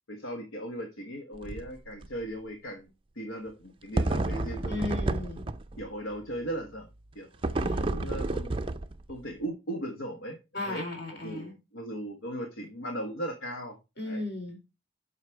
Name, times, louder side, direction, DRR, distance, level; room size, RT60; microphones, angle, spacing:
voice 1, 0.1-2.9 3.1-4.9 5.8-6.9 7.1-7.5 7.9-8.5 9.1-10.9 11.1-13.8 14.0-14.2, right 1 dB, 70° left, 1.3 m, -38 dB
sound 1, 1.3-1.7 2.0-2.1 4.0-5.9 7.4-9.2, right 2 dB, 25° right, 0.4 m, -30 dB
voice 2, 4.7-5.4 7.5-8.1 10.5-11.5 14.0-14.6, left 2 dB, 50° left, 4.1 m, -36 dB
8.2 x 5.7 x 4.6 m
head